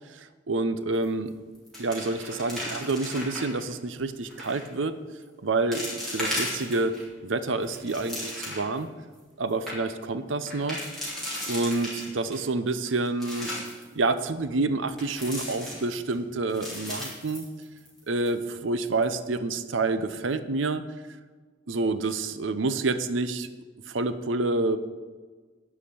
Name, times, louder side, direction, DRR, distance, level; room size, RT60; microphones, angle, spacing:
voice 1, 0.1-1.3 1.8-5.0 5.4-7.0 7.2-8.9 9.4-10.9 11.5-13.5 13.9-17.4 18.1-20.8 21.7-23.5 23.9-24.8, right 3 dB, 80° right, 12 dB, 0.7 m, -28 dB
sound 1, 0.9-1.3 1.5-3.6 4.3-4.7 5.2-5.3 5.7-7.0 7.5-8.8 9.2-9.3 9.5-9.8 10.5-12.4 12.9-13.8 15.0-16.1 16.5-18.0 18.3-18.4 18.9-19.1, left 1 dB, ahead, 3.7 m, -35 dB
11.5 x 4.9 x 8.5 m, 1.4 s
head